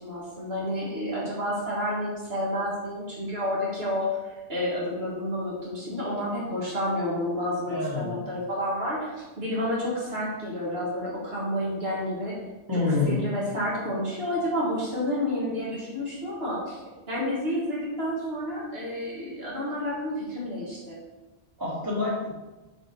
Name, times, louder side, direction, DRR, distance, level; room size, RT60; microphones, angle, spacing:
voice 1, 0.0-12.3 12.7-16.8 17.1-21.0, left 1 dB, 70° right, -6 dB, 1.9 m, -30 dB
voice 2, 7.7-8.1 12.7-13.2 21.6-22.3, left 3 dB, 20° right, -7 dB, 2.0 m, -27 dB
5.7 x 4.4 x 4.3 m, 1.1 s
omnidirectional pair, 1.1 m